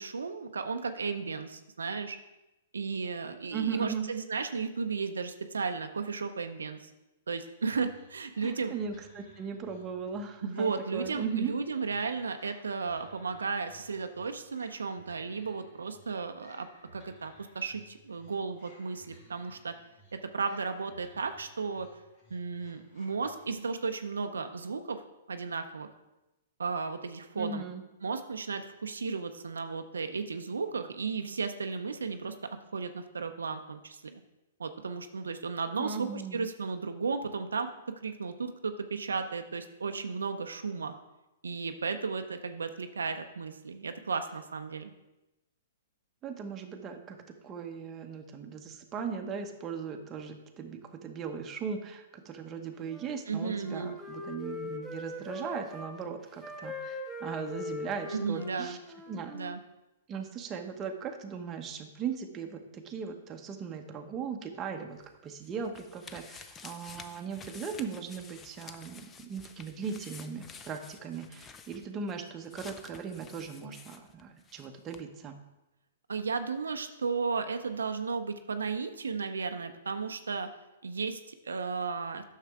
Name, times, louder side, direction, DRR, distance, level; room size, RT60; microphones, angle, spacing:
voice 1, 0.0-2.2 2.7-6.9 7.3-8.8 10.4-16.7 16.9-19.7 20.1-21.9 22.3-25.0 25.3-25.9 26.6-27.6 28.0-32.3 32.7-34.2 34.6-37.7 38.0-40.9 41.4-44.9 53.3-53.9 58.1-58.8 59.3-59.6 76.1-80.5 80.8-82.2, right 5 dB, 90° right, 7 dB, 0.6 m, -34 dB
voice 2, 3.5-4.1 8.4-11.5 27.3-27.8 35.8-36.5 46.2-47.2 47.4-58.8 59.1-59.3 60.1-75.4, right 6 dB, 25° right, 4 dB, 0.9 m, -38 dB
sound 1, 7.8-23.8, equal, 45° left, 2.7 m, -59 dB
Wind instrument woodwind instrument, 52.8-55.9 56.4-59.6, left 1 dB, 5° left, 1.3 m, -41 dB
sound 2, 65.0-74.7 74.9-75.0, left 6 dB, 20° left, 0.5 m, -50 dB
9.3 x 6.5 x 3.6 m, 0.98 s
hypercardioid pair, 130°, 0 cm